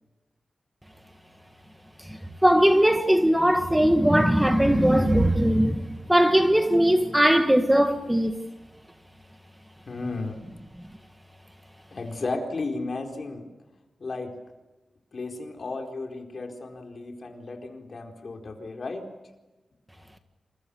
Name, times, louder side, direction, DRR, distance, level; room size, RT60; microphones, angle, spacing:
voice 1, 2.0-8.4, equal, 5° right, 1.7 m, -20 dB
voice 2, 9.9-10.4 11.9-13.5 14.0-14.4 15.1-19.1, left 3 dB, 50° left, 4.3 m, -34 dB
28.5 x 27.5 x 7.1 m
wide cardioid pair, 140°, 0 cm